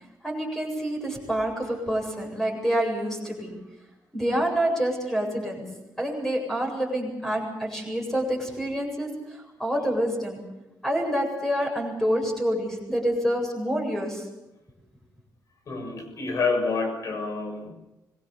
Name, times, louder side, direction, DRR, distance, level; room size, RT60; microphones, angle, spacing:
voice 1, 0.2-3.5 4.1-5.6 6.0-10.4 10.8-14.3, equal, 5° left, 0 dB, 8.0 m, -27 dB
voice 2, 15.7-17.7, left 4 dB, 50° left, 5 dB, 6.8 m, -28 dB
26.0 x 22.0 x 7.3 m, 0.96 s
wide cardioid pair, 165°, 7 cm